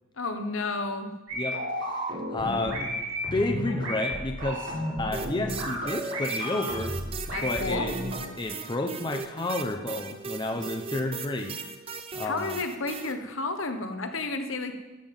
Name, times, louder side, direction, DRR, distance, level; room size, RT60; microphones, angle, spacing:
voice 1, 0.2-1.1 7.3-7.9 12.2-14.7, left 3 dB, 75° left, 7 dB, 1.1 m, -31 dB
voice 2, 1.3-2.9 3.3-7.0 7.4-8.0 8.4-11.6 12.1-12.6, left 2 dB, 20° left, 4 dB, 0.7 m, -31 dB
sound 1, 1.3-8.2, equal, 70° right, 3.9 m, -32 dB
sound 2, 5.1-13.1, right 5 dB, 30° right, 0.7 m, -38 dB
12.5 x 7.5 x 5.4 m, 1.2 s
head